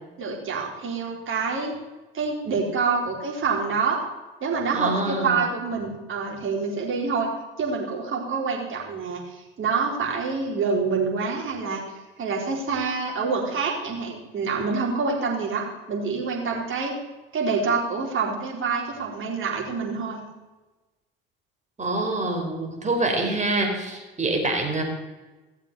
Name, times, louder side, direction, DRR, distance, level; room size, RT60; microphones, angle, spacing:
voice 1, 0.2-1.8 2.1-4.0 4.4-7.3 7.6-11.8 12.2-16.9 17.3-20.2, right 4 dB, 45° right, -2 dB, 4.4 m, -26 dB
voice 2, 4.7-5.4 21.8-24.8, right 2 dB, 25° right, 3 dB, 4.6 m, -25 dB
16.5 x 7.3 x 6.9 m, 1.1 s
hypercardioid pair, 60°, 29 cm